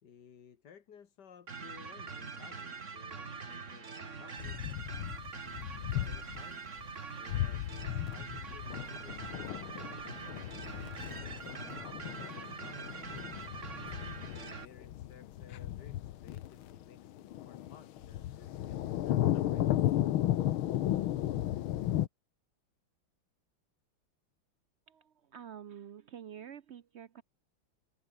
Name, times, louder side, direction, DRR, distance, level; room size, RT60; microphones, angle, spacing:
voice 1, 0.0-4.6 5.9-6.7 7.1-10.5 11.2-12.9 14.2-19.8, left 7 dB, 55° left, 2.1 m, -57 dB
sound 1, 1.5-14.7, right 5 dB, 40° right, 2.2 m, -44 dB
sound 2, 4.4-6.4 6.8-6.9 7.3-22.1, left 13 dB, 90° left, 1.7 m, -35 dB
voice 2, 24.9-27.2, right 9 dB, 80° right, 0.6 m, -48 dB
omnidirectional pair, 2.2 m